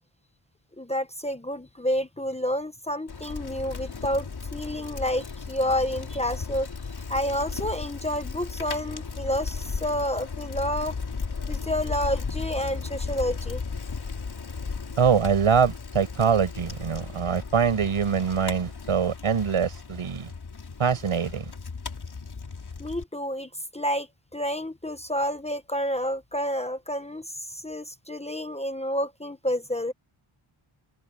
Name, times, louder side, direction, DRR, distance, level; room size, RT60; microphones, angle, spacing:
voice 1, 0.8-6.7 7.1-10.9 11.5-13.6 22.8-29.9, equal, 15° left, 1.2 m, -29 dB
Bicycle, 3.1-23.0, left 5 dB, 50° left, 4.3 m, -35 dB
voice 2, 15.0-20.3 20.8-21.5, right 7 dB, 80° right, 7.3 m, -24 dB
wide cardioid pair, 130°, 50 cm